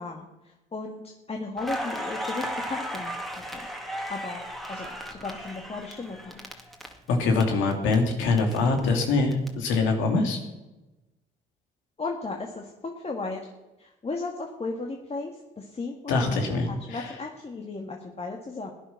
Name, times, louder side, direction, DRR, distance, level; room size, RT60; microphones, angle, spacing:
voice 1, 0.0-3.7 4.1-4.4 4.7-6.5 12.0-13.5 13.8-18.7, left 3 dB, 30° left, 1 dB, 1.9 m, -36 dB
Crackle, 1.6-7.4 7.7-9.5, equal, ahead, 2.2 m, -35 dB
voice 2, 7.1-10.4 16.1-17.0, left 3 dB, 85° left, 3 dB, 2.8 m, -24 dB
16.5 x 10.5 x 6.0 m, 1.0 s
supercardioid pair, 75°, 19 cm